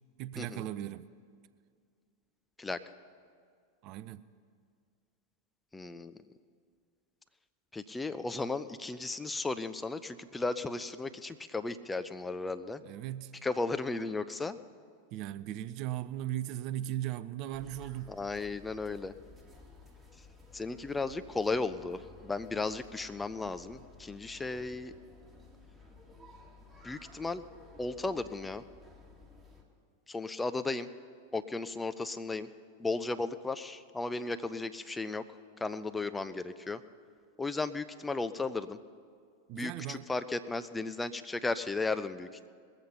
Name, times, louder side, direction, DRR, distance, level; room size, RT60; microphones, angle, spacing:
voice 1, 0.2-1.1 3.8-4.3 12.8-13.4 15.1-18.2 39.5-40.1, right 13 dB, 40° right, 0.4 m, -38 dB
voice 2, 5.7-6.2 7.7-12.8 13.4-14.6 18.1-19.1 20.2-20.3 20.5-24.9 26.8-27.4 27.8-28.6 30.1-30.9 31.3-32.5 32.8-35.2 35.6-36.8 37.4-38.8 39.5-42.5, left 3 dB, 10° left, 0.5 m, -35 dB
sound 1, 17.5-29.6, left 3 dB, 10° right, 2.0 m, -55 dB
20.5 x 8.0 x 5.6 m
figure-of-eight pair, 90°, 0 cm